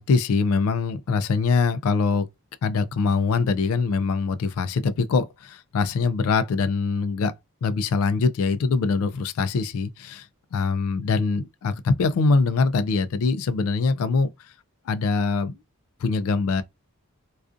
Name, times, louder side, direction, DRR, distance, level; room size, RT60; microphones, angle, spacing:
voice 1, 0.0-2.3 2.6-7.3 7.6-14.5 14.9-15.6 16.0-16.6, left 4 dB, 65° left, 0.3 m, -23 dB
2.4 x 2.3 x 2.4 m
head